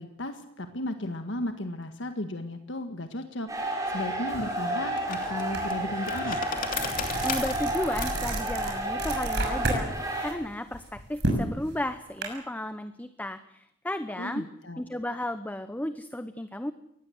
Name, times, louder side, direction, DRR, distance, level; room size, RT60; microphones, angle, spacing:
voice 1, 0.0-3.5 3.9-6.5 14.2-14.8, left 1 dB, 70° left, 7 dB, 1.7 m, -35 dB
sound 1, 3.5-10.3, right 1 dB, 20° right, 6.0 m, -31 dB
sound 2, 3.9-10.5, left 5 dB, 45° left, 3.0 m, -38 dB
sound 3, 5.5-5.7 6.1-9.8 10.2-12.2, right 2 dB, 60° right, 6.4 m, -31 dB
voice 2, 7.0-14.4 14.8-16.7, left 1 dB, 10° left, 10 dB, 0.8 m, -34 dB
23.0 x 19.0 x 7.9 m, 0.79 s
head